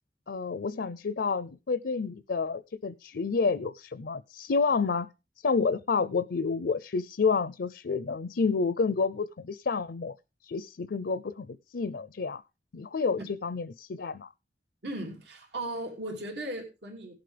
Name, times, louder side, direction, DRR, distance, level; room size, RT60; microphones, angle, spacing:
voice 1, 0.3-5.1 5.4-10.1 10.4-12.4 12.7-14.3, left 4 dB, 70° left, 15 dB, 0.5 m, -29 dB
voice 2, 14.8-17.1, right 1 dB, 75° right, 1 dB, 2.7 m, -37 dB
17.5 x 7.8 x 3.3 m, 0.28 s
head